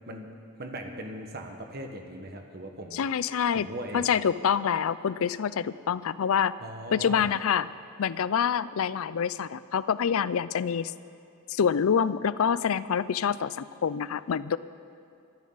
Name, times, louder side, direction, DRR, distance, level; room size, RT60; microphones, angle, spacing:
voice 1, 0.6-3.1 3.5-4.1 6.6-7.3, right 1 dB, 45° right, 3 dB, 1.4 m, -39 dB
voice 2, 2.9-3.7 3.9-6.5 6.9-7.7 8.0-10.9 11.5-14.6, left 7 dB, 70° left, 17 dB, 0.4 m, -26 dB
24.5 x 12.0 x 4.0 m, 2.5 s
head